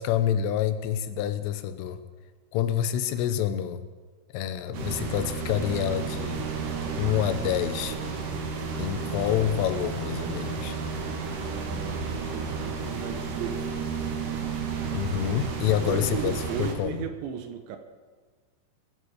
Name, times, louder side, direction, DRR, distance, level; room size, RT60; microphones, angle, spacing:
voice 1, 0.0-2.0 2.5-3.8 4.3-6.4 7.0-8.0 8.8-10.8 14.9-17.0, left 10 dB, 85° left, 11 dB, 3.4 m, -27 dB
sound 1, 4.7-16.7, right 5 dB, 60° right, 2.6 m, -32 dB
voice 2, 11.3-12.0 12.3-13.6 15.8-17.8, right 8 dB, 75° right, 7 dB, 3.1 m, -36 dB
23.0 x 11.5 x 4.8 m, 1.4 s
omnidirectional pair, 5.7 m